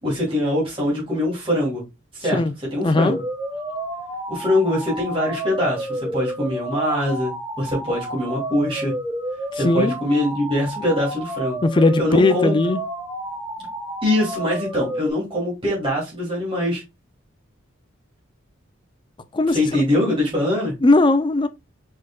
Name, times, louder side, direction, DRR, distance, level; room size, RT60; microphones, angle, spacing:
voice 1, 0.0-1.8 2.1-2.4 2.7-3.1 4.3-8.9 9.5-11.6 12.0-12.5 14.0-16.8 19.5-20.7, left 1 dB, 25° right, 2.5 m, -23 dB
voice 2, 2.8-3.2 9.5-10.0 11.6-12.8 19.3-19.6 20.8-21.5, left 2 dB, 25° left, 0.4 m, -18 dB
sound 1, 3.1-15.1, right 1 dB, 10° right, 1.2 m, -30 dB
4.9 x 4.3 x 2.3 m
head